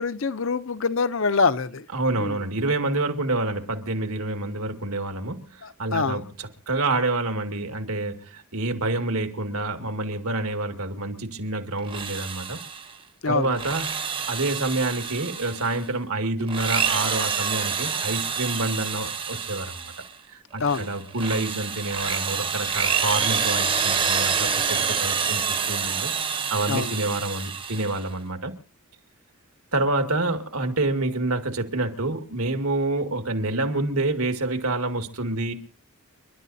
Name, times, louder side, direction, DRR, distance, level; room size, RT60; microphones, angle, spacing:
voice 1, 0.0-1.9 2.2-2.4 5.6-6.2 13.2-13.5 20.6-20.9 26.7-26.9, left 4 dB, 60° left, 0.7 m, -25 dB
voice 2, 1.9-12.6 13.3-13.9 14.3-19.8 20.3-28.6 29.7-35.5, right 2 dB, 85° right, 2.1 m, -27 dB
Drill, 11.8-12.9 13.4-15.8 16.4-20.1 20.6-28.1, right 6 dB, 25° right, 0.8 m, -27 dB
30.0 x 12.0 x 2.7 m
head